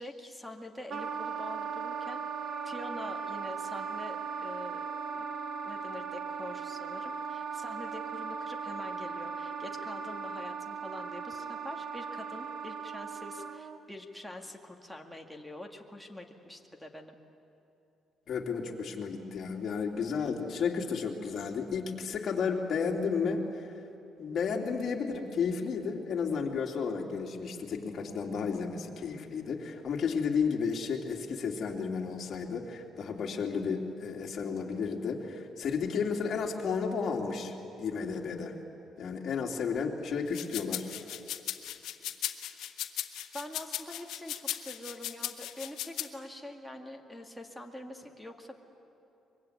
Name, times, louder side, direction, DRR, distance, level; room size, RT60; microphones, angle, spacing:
voice 1, 0.0-2.2 2.6-4.9 5.2-5.3 5.6-17.2 43.3-48.6, left 1 dB, ahead, 1 dB, 2.0 m, -45 dB
Wind instrument woodwind instrument, 0.9-13.8, right 5 dB, 60° right, 1.2 m, -38 dB
voice 2, 18.3-23.7 24.2-38.5 39.0-40.9, left 5 dB, 50° left, 0 dB, 3.0 m, -32 dB
sound 1, 40.3-46.1, left 12 dB, 85° left, 1.4 m, -37 dB
24.0 x 23.0 x 9.5 m, 3.0 s
cardioid pair, 130°, 0 cm